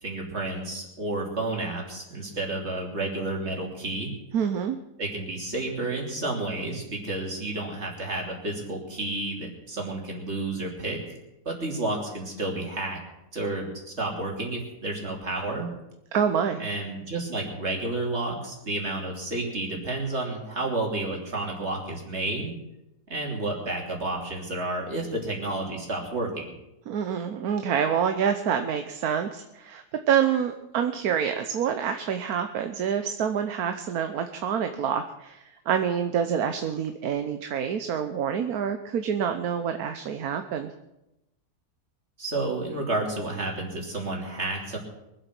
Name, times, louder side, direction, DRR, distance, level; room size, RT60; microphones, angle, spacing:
voice 1, 0.0-4.1 5.0-11.2 11.4-13.0 13.3-15.7 16.6-22.5 23.1-26.5 42.2-44.8, right 2 dB, 40° right, -1 dB, 3.3 m, -31 dB
voice 2, 4.3-4.8 16.1-16.6 26.9-40.7, right 8 dB, 70° right, 7 dB, 1.3 m, -27 dB
23.5 x 8.1 x 6.0 m, 0.90 s
omnidirectional pair, 1.7 m